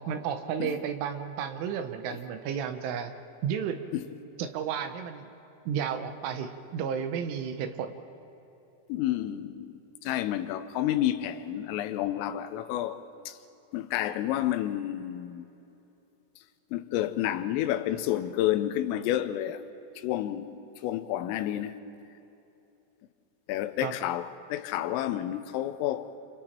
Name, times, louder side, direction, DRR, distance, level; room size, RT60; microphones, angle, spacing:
voice 1, 0.0-3.1 3.4-3.8 4.4-5.3 5.7-8.0 23.8-23.9, right 8 dB, 80° right, 3.4 m, -32 dB
voice 2, 8.9-13.4 13.7-15.5 16.7-19.6 20.0-21.8 23.5-26.1, left 12 dB, 85° left, 3.5 m, -30 dB
28.5 x 28.0 x 4.4 m
omnidirectional pair, 5.8 m